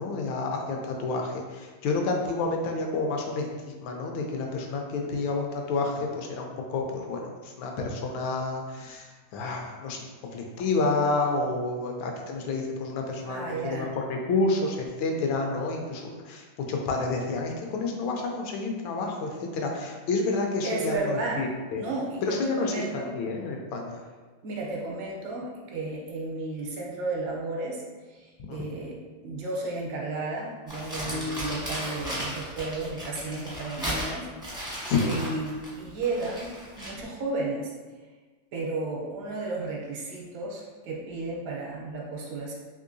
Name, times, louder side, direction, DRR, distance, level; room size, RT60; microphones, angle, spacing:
voice 1, 0.0-21.8 22.2-24.0 28.5-28.7 31.1-31.4 34.9-35.2, left 3 dB, 80° left, 2 dB, 1.3 m, -29 dB
voice 2, 13.2-13.9 20.6-21.5 21.7-23.1 24.4-27.8 28.1-29.0 29.2-37.7 38.5-42.5, right 2 dB, 75° right, -2 dB, 1.3 m, -33 dB
Crumpling crinkling, 30.7-37.0, equal, 5° right, 0.4 m, -35 dB
3.6 x 3.0 x 2.5 m, 1.4 s
omnidirectional pair, 2.1 m